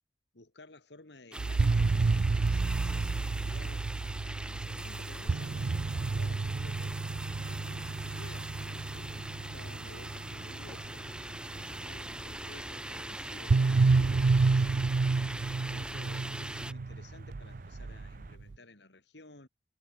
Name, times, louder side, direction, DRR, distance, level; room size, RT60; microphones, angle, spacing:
voice 1, 0.3-7.0 7.4-11.1 11.5-14.9 15.5-19.5, left 2 dB, 75° left, 2.6 m, -54 dB
sound 1, 1.3-16.7, right 1 dB, 5° right, 2.2 m, -42 dB
sound 2, 1.4-11.5 13.5-18.5, right 3 dB, 80° right, 0.6 m, -30 dB
sound 3, 7.1-18.4, right 2 dB, 50° right, 1.3 m, -50 dB
head